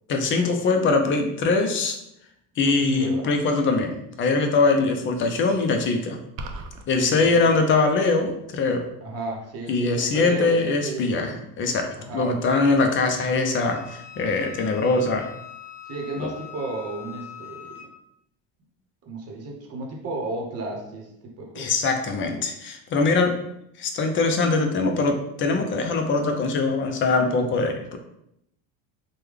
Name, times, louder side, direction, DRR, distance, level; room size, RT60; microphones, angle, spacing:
voice 1, 0.1-2.0 2.6-3.9 4.2-6.2 6.9-8.9 9.7-15.3 16.2-16.3 21.6-23.3 23.8-28.0, left 3 dB, 35° left, 5 dB, 0.4 m, -22 dB
voice 2, 2.6-3.4 7.0-7.5 9.0-11.4 12.0-12.3 12.8-13.1 15.9-17.7 19.0-21.7, right 2 dB, 40° right, 1 dB, 0.8 m, -34 dB
sound 1, 6.4-6.9, right 2 dB, 60° right, 0.5 m, -34 dB
Wind instrument woodwind instrument, 13.7-17.9, left 11 dB, ahead, 1.0 m, -42 dB
3.2 x 2.2 x 3.5 m, 0.78 s
cardioid pair, 135°, 36 cm